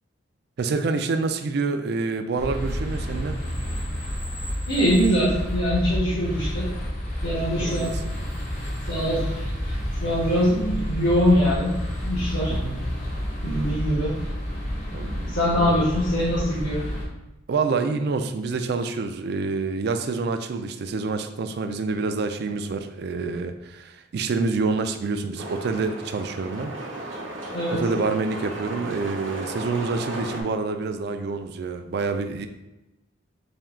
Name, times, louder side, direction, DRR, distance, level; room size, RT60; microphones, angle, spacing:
voice 1, 0.6-3.4 7.6-8.1 12.5-12.8 14.9-15.9 17.5-26.7 27.7-32.5, right 4 dB, 55° right, 8 dB, 0.3 m, -27 dB
sound 1, 2.4-17.1, equal, 35° left, 0.8 m, -30 dB
voice 2, 4.7-6.7 7.2-7.9 8.9-9.7 10.0-11.8 12.1-12.6 13.4-14.2 15.3-16.9 27.5-27.8, equal, 75° left, -10 dB, 1.2 m, -23 dB
sound 2, 25.4-30.4, right 1 dB, 75° right, 0.8 m, -35 dB
4.3 x 2.3 x 3.6 m, 0.96 s
head